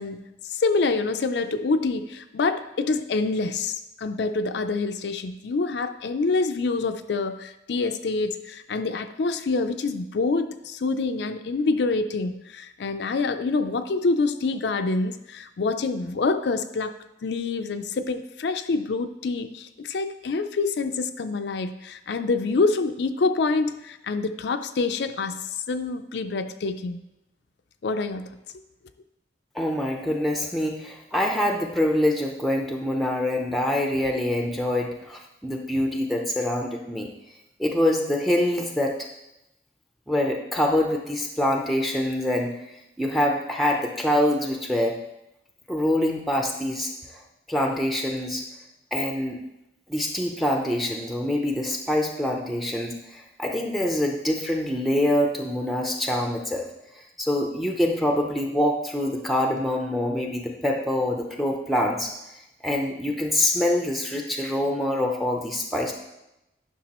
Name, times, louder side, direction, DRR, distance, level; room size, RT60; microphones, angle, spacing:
voice 1, 0.0-16.9 17.2-25.4 25.7-27.0 27.8-28.3, left 3 dB, 65° left, 9 dB, 0.4 m, -26 dB
voice 2, 29.5-37.1 37.6-39.1 40.1-42.6 43.0-45.0 45.7-47.2 47.5-48.4 48.9-49.4 49.9-56.7 57.2-62.1 62.6-65.9, left 1 dB, ahead, 1 dB, 0.5 m, -25 dB
10.0 x 5.8 x 3.0 m, 0.90 s
head